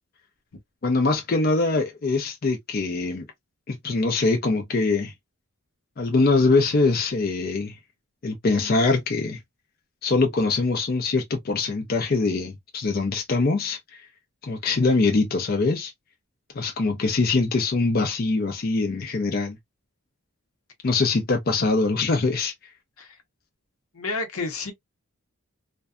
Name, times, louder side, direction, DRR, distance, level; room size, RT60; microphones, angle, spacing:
voice 1, 0.8-3.2 3.7-5.1 6.0-7.8 8.2-9.4 10.0-13.8 14.4-15.9 16.5-19.6 20.8-22.5, left 3 dB, 45° left, 0.5 m, -23 dB
voice 2, 23.9-24.7, left 3 dB, 85° left, 0.8 m, -30 dB
2.5 x 2.2 x 2.3 m
head